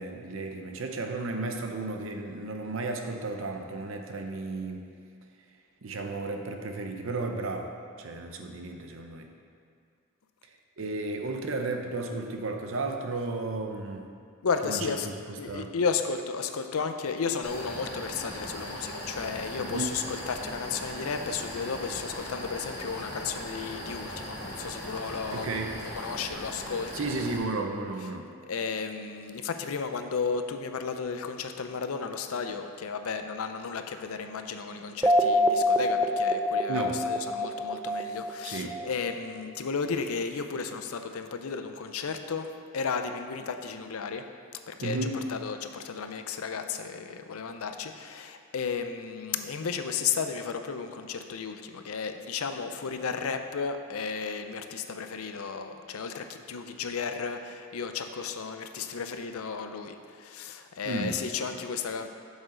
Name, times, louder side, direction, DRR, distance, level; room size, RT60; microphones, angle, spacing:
voice 1, 0.0-4.9 5.8-9.3 10.8-14.1 14.6-15.7 19.6-19.9 25.3-25.7 26.9-28.3 36.7-37.0 38.4-38.7 44.8-45.2 60.8-61.2, right 3 dB, 65° right, 4 dB, 0.7 m, -33 dB
voice 2, 14.4-15.1 15.4-25.5 26.0-26.9 28.5-44.2 44.7-45.0 45.3-62.1, left 5 dB, 80° left, 7 dB, 0.5 m, -33 dB
sound 1, 17.4-27.4, equal, 50° left, 2.1 m, -39 dB
sound 2, 35.0-39.0, left 1 dB, 10° right, 0.3 m, -25 dB
7.9 x 7.0 x 3.8 m, 2.3 s
head